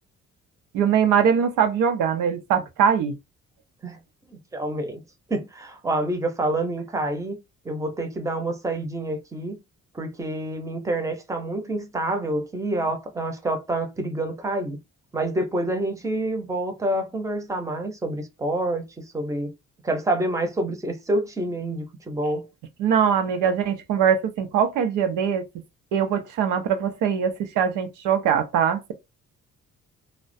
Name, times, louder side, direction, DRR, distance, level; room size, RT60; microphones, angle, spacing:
voice 1, 0.7-3.2 22.8-25.4 25.9-28.9, right 8 dB, 85° right, 0.6 m, -22 dB
voice 2, 4.3-5.0 5.3-7.4 7.6-9.6 9.9-14.8 15.1-18.8 19.1-19.5 19.8-22.5, right 1 dB, 10° right, 0.6 m, -27 dB
2.3 x 2.1 x 2.5 m
cardioid pair, 90°, 30 cm